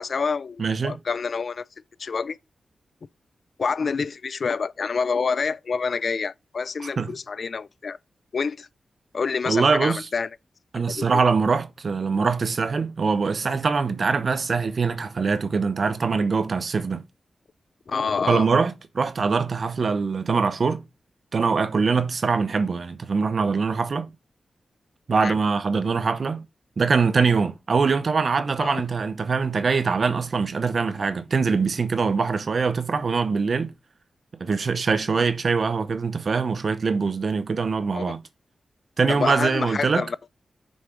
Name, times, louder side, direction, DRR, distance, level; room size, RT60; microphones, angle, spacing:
voice 1, 0.0-1.6 2.0-2.4 3.6-8.0 8.3-8.7 9.1-10.3 10.9-11.2 17.9-18.5 25.2-25.3 28.6-28.8 37.9-38.1 39.1-40.3, left 5 dB, 65° left, 0.3 m, -27 dB
voice 2, 0.6-1.0 7.0-7.1 9.5-10.0 10.7-17.0 18.3-20.8 21.3-24.1 25.1-26.4 26.8-33.7 34.4-38.2 39.0-40.1, right 5 dB, 60° right, 0.7 m, -23 dB
6.3 x 4.8 x 3.7 m
cardioid pair, 60°, 0 cm